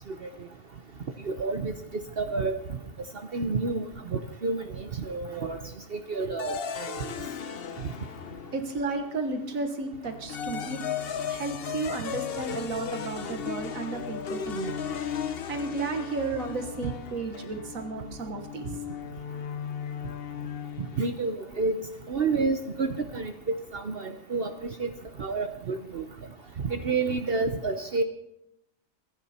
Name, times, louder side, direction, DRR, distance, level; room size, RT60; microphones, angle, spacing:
voice 1, 1.2-2.6 3.3-3.8 4.1-5.6 5.9-7.1 16.8-16.9 21.0-21.7 22.1-23.3 23.7-24.5 24.8-24.9 25.2-26.0 26.6-28.0, right 4 dB, 50° right, 7 dB, 1.0 m, -29 dB
sound 1, 6.4-9.0 10.0-21.2, left 7 dB, 50° left, 0.9 m, -36 dB
voice 2, 8.5-10.8 11.3-14.7 15.2-18.7, right 3 dB, 80° right, 6 dB, 1.9 m, -33 dB
25.0 x 11.0 x 4.3 m, 0.85 s
omnidirectional pair, 1.4 m